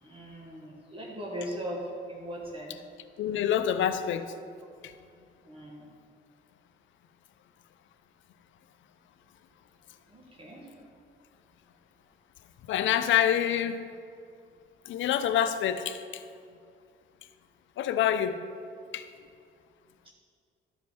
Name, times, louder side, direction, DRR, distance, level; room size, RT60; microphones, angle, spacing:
voice 1, 0.0-2.8 5.4-5.9 10.1-10.7, equal, 25° right, -3 dB, 1.6 m, -39 dB
voice 2, 3.2-4.3 4.8-4.9 12.7-13.9 14.9-16.2 17.8-18.4 18.9-19.1, left 10 dB, 75° left, 11 dB, 0.6 m, -27 dB
12.5 x 5.2 x 4.5 m, 2.3 s
cardioid pair, 90°, 20 cm